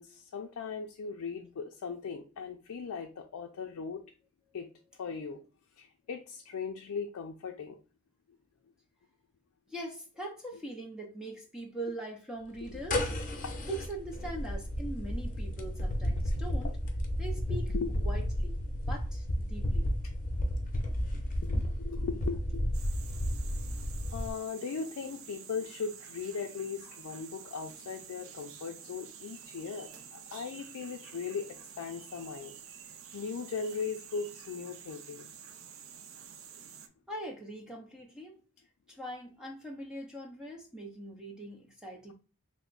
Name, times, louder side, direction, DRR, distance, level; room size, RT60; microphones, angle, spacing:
voice 1, 0.0-4.0 4.5-4.7 5.0-5.4 5.8-7.8 12.7-12.8 13.4-13.5 16.6-16.7 17.7-17.9 21.4-22.7 24.1-32.5 32.8-35.3, left 5 dB, 80° left, 0.4 m, -38 dB
voice 2, 9.7-13.1 13.6-16.8 17.2-18.6 18.9-19.9 37.1-38.4 38.9-42.1, right 1 dB, 5° right, 0.4 m, -42 dB
sound 1, 12.6-24.3, equal, 35° left, 0.7 m, -32 dB
sound 2, 22.7-36.9, right 8 dB, 60° right, 0.4 m, -49 dB
3.3 x 2.1 x 3.7 m
head